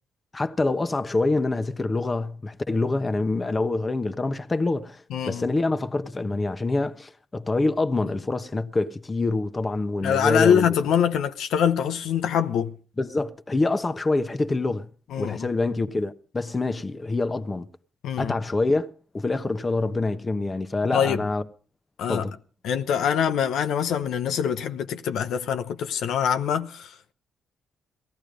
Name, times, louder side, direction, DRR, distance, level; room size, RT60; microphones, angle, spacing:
voice 1, 0.3-10.7 13.0-14.9 15.2-17.7 18.2-21.4 22.1-22.3, left 2 dB, 25° left, 1.1 m, -26 dB
voice 2, 5.1-5.5 10.0-12.8 15.1-15.5 18.0-18.3 20.9-21.2 22.0-22.3 22.6-27.1, left 8 dB, 75° left, 0.8 m, -24 dB
18.0 x 13.5 x 5.1 m
cardioid pair, 90°, 0 cm